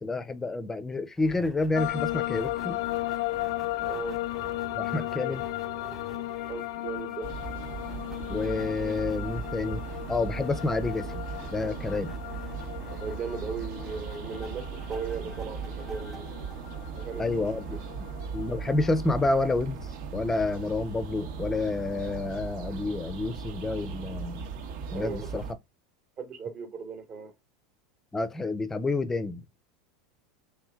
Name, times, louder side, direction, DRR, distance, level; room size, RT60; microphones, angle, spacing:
voice 1, 0.0-2.8 4.7-5.4 8.3-9.8 10.1-11.2 11.5-12.2 17.2-18.1 18.3-24.4 24.9-25.4 28.1-29.4, left 3 dB, 15° left, 0.5 m, -29 dB
sound 1, 1.2-17.7, right 2 dB, 5° right, 1.1 m, -47 dB
sound 2, 1.7-19.5, left 19 dB, 75° left, 0.3 m, -36 dB
voice 2, 3.8-4.2 6.5-7.3 13.0-16.5 16.9-17.4 24.9-25.3 26.2-27.3, right 6 dB, 35° right, 1.1 m, -37 dB
sound 3, 7.2-25.5, right 5 dB, 65° right, 1.0 m, -38 dB
3.4 x 3.1 x 3.5 m
supercardioid pair, 120°, 3 cm